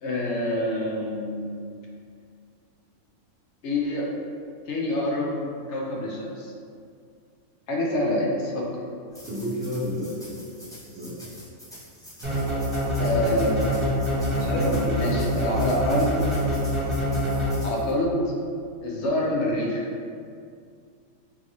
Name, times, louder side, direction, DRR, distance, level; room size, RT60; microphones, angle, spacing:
voice 1, 0.0-1.6 3.6-4.1 4.7-6.5 7.7-8.7 13.0-13.7 14.2-16.2 17.6-18.3 18.8-19.9, left 1 dB, 65° left, -2 dB, 0.7 m, -26 dB
sound 1, 9.1-17.9, equal, 5° left, 0.4 m, -46 dB
voice 2, 9.3-10.5 10.9-11.3, equal, 55° right, -5 dB, 0.7 m, -31 dB
sound 2, 12.2-18.0, equal, 35° right, 1.1 m, -25 dB
3.9 x 2.4 x 2.9 m, 2.3 s
omnidirectional pair, 1.5 m